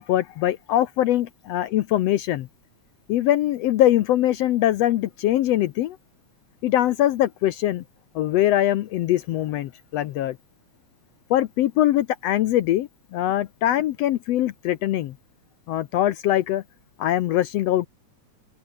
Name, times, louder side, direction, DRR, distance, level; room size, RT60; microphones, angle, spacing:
voice 1, 0.0-2.5 3.1-6.0 6.6-7.8 8.1-10.4 11.3-15.1 15.7-16.6 17.0-17.9, left 13 dB, 70° left, 1.6 m, -22 dB
open air
omnidirectional pair, 3.4 m